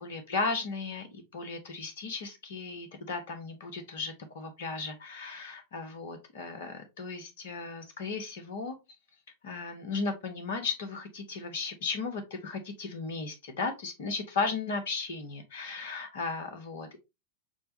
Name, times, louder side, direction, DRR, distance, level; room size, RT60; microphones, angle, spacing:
voice 1, 0.0-8.8 9.4-17.0, left 4 dB, 60° left, 7 dB, 1.1 m, -35 dB
6.0 x 2.2 x 2.7 m, 0.23 s
figure-of-eight pair, 90°, 0 cm